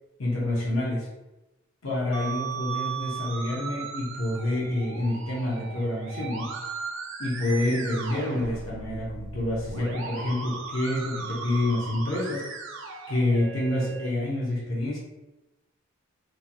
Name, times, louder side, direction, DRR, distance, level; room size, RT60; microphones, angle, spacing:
voice 1, 0.2-1.1 1.8-6.5 7.2-12.5 13.1-15.0, left 1 dB, 70° left, -4 dB, 0.8 m, -28 dB
Musical instrument, 2.1-14.1, right 5 dB, 60° right, 0.4 m, -37 dB
2.9 x 2.6 x 2.2 m, 1.0 s
head